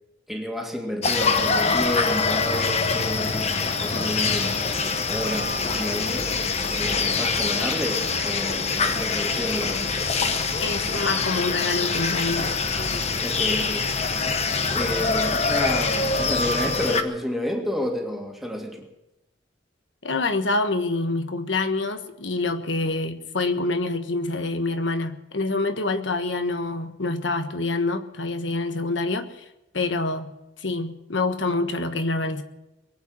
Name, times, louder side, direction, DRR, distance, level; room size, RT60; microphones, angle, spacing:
voice 1, 0.3-4.6 5.1-6.3 6.7-9.9 13.2-13.9 14.7-18.9, left 1 dB, ahead, 1 dB, 2.1 m, -30 dB
sound 1, 1.0-17.0, left 4 dB, 35° left, 1.0 m, -24 dB
voice 2, 10.6-12.5 20.0-29.3 29.7-30.3 30.6-32.4, left 2 dB, 80° left, 8 dB, 1.4 m, -26 dB
22.5 x 8.8 x 6.4 m, 0.93 s
head